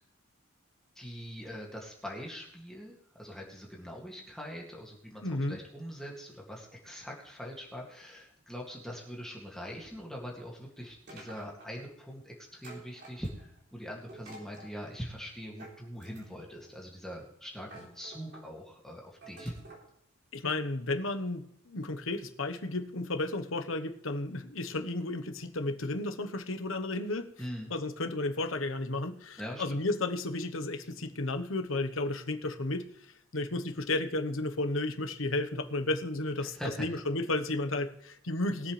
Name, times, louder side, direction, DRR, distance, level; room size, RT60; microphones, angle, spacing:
voice 1, 1.0-19.6 27.4-27.7 29.4-29.8 36.4-37.0, equal, ahead, -3 dB, 2.3 m, -42 dB
voice 2, 5.2-5.6 20.3-27.3 27.7-32.9 33.3-38.7, left 2 dB, 75° left, 7 dB, 1.1 m, -33 dB
sound 1, 11.1-11.9 12.6-13.6 14.1-14.7 15.6-16.5 17.2-17.3 17.6-18.5 19.2-19.9, right 2 dB, 55° right, 3.6 m, -50 dB
21.5 x 7.7 x 3.3 m, 0.75 s
head